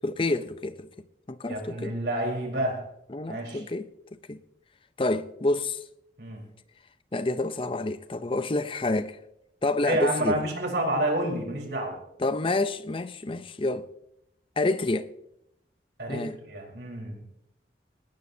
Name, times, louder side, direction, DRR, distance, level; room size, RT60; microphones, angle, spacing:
voice 1, 0.0-0.9 1.3-1.9 3.1-3.9 4.3-4.4 5.0-5.8 7.1-9.2 9.6-10.5 12.2-13.8 14.6-15.1 16.1-16.4, left 2 dB, 30° left, 0.6 m, -28 dB
voice 2, 1.5-2.8 3.3-3.6 6.2-6.4 9.8-12.0 16.0-17.2, right 1 dB, 75° right, 4.1 m, -29 dB
19.0 x 18.5 x 2.7 m
head